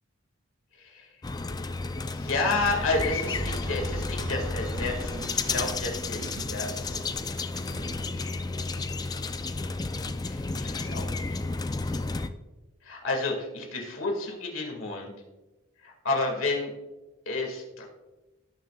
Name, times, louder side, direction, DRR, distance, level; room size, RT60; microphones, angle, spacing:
voice 1, 0.8-1.1 2.0-7.1 10.2-11.4 12.8-15.1 15.8-16.7 17.3-17.8, left 3 dB, 75° left, 2 dB, 2.0 m, -31 dB
sound 1, 1.2-12.3, left 3 dB, 20° left, 0.4 m, -32 dB
sound 2, 2.5-8.3, right 2 dB, 60° right, 0.7 m, -40 dB
17.5 x 6.6 x 2.3 m, 1.1 s
head